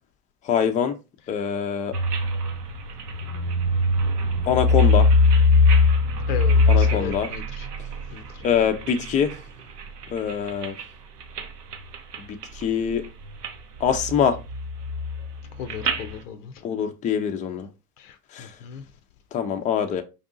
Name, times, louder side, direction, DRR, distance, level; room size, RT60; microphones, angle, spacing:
voice 1, 0.4-1.0 1.3-1.9 4.5-5.1 6.7-7.3 8.4-9.3 10.1-10.7 12.3-13.0 13.8-14.4 16.6-17.7 18.3-18.5 19.3-20.0, left 7 dB, 20° left, 0.3 m, -24 dB
sound 1, 1.9-9.4 9.8-10.8 11.2-11.5 11.7-12.6 12.9-13.5 13.8-16.2, left 3 dB, 90° right, 0.7 m, -22 dB
voice 2, 6.3-7.4 8.1-8.2 15.6-16.5 18.6-18.8, left 7 dB, 80° left, 0.5 m, -34 dB
4.6 x 2.6 x 2.5 m
hypercardioid pair, 75°, 46 cm